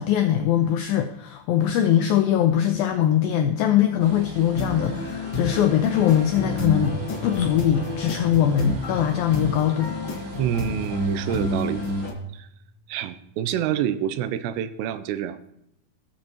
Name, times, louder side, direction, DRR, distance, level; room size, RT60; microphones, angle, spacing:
voice 1, 0.0-7.0 7.2-10.0, left 10 dB, 85° left, 6 dB, 2.0 m, -21 dB
sound 1, 4.0-12.1, right 1 dB, 65° right, 2.5 m, -42 dB
sound 2, 4.5-12.1, left 2 dB, 65° left, 1.2 m, -30 dB
sound 3, 6.8-13.9, equal, ahead, 1.7 m, -45 dB
voice 2, 10.4-11.8 12.3-12.5 12.9-15.4, right 10 dB, 85° right, 12 dB, 2.8 m, -27 dB
19.0 x 7.5 x 3.0 m, 0.76 s
omnidirectional pair, 4.9 m